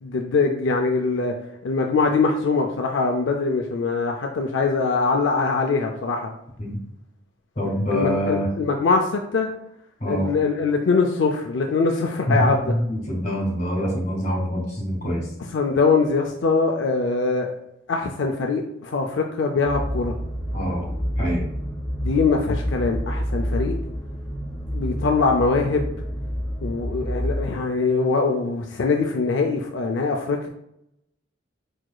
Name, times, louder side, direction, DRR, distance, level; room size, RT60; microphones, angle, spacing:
voice 1, 0.0-1.3 1.6-6.3 7.9-9.5 10.1-12.7 15.5-17.5 17.9-20.2 22.0-23.8 24.7-25.9 26.6-30.5, left 4 dB, 80° left, 3 dB, 0.4 m, -22 dB
voice 2, 7.6-8.5 10.0-10.3 12.3-15.3 20.5-20.8 21.2-21.5, equal, 40° left, -2 dB, 1.8 m, -25 dB
sound 1, 19.6-27.3, equal, 15° left, 0.8 m, -28 dB
4.8 x 4.7 x 2.3 m, 0.78 s
head